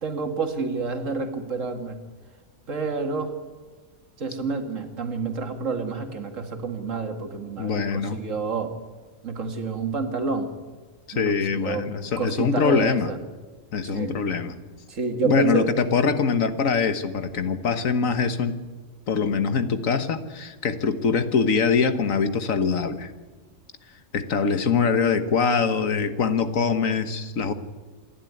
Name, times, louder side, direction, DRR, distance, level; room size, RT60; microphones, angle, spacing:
voice 1, 0.0-2.0 2.7-3.3 4.2-8.7 9.2-10.5 11.1-11.8 12.2-13.2 13.8-14.1 14.9-15.7, right 4 dB, 75° right, 6 dB, 2.4 m, -28 dB
voice 2, 7.6-8.2 11.1-13.1 13.7-14.6 15.2-18.6 19.1-23.1 24.1-27.5, left 5 dB, 90° left, 10 dB, 1.7 m, -23 dB
27.5 x 11.5 x 9.5 m, 1.3 s
omnidirectional pair, 1.3 m